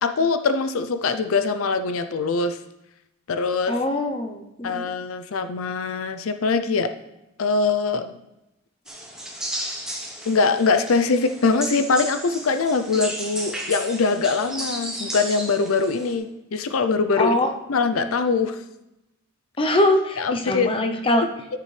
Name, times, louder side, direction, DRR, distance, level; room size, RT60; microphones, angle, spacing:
voice 1, 0.0-2.6 3.3-3.7 4.6-6.9 7.4-8.1 10.3-17.4 17.7-18.6 20.2-20.7, left 4 dB, 80° left, 9 dB, 0.5 m, -22 dB
voice 2, 3.7-4.9 17.2-17.5 19.6-21.3, left 1 dB, 25° left, 4 dB, 0.7 m, -22 dB
sound 1, 8.9-16.1, right 1 dB, 5° right, 1.1 m, -34 dB
12.5 x 6.8 x 3.3 m, 0.91 s
head